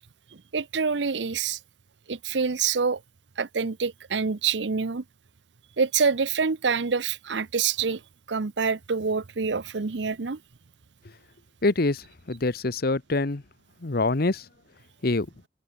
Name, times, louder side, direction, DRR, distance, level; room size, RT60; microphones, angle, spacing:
voice 1, 0.5-1.6 2.1-3.0 3.4-5.0 5.8-8.0 8.3-10.4, right 5 dB, 70° right, 0.7 m, -26 dB
voice 2, 11.6-13.4 13.8-14.4 15.0-15.3, left 2 dB, 55° left, 1.0 m, -25 dB
open air
head